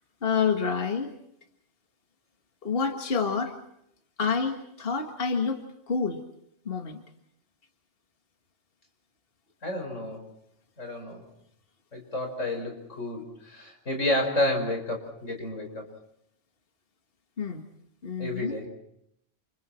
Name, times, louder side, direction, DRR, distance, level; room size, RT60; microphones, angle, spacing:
voice 1, 0.2-1.2 2.6-3.5 4.2-6.2 6.7-7.0 17.4-17.6 18.0-18.6, left 5 dB, 50° left, 4 dB, 2.0 m, -28 dB
voice 2, 9.6-10.3 10.8-11.3 11.9-15.9 18.2-18.7, left 1 dB, 90° left, 4 dB, 5.7 m, -30 dB
29.5 x 29.0 x 4.4 m, 0.76 s
omnidirectional pair, 1.2 m